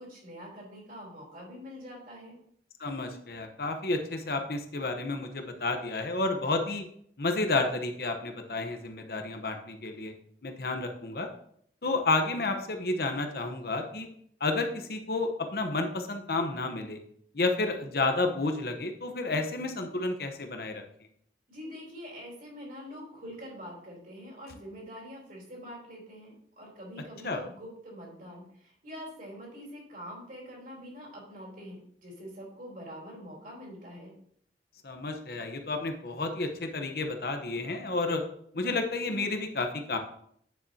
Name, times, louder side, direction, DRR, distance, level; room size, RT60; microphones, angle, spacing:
voice 1, 0.0-2.4 21.5-34.1, equal, 50° right, -3 dB, 3.6 m, -45 dB
voice 2, 2.8-6.8 7.2-10.1 10.4-11.3 11.8-14.1 14.4-17.0 17.3-20.8 27.2-27.4 34.8-38.2 38.5-40.0, left 3 dB, 60° left, 5 dB, 1.0 m, -31 dB
9.4 x 7.4 x 2.8 m, 0.66 s
head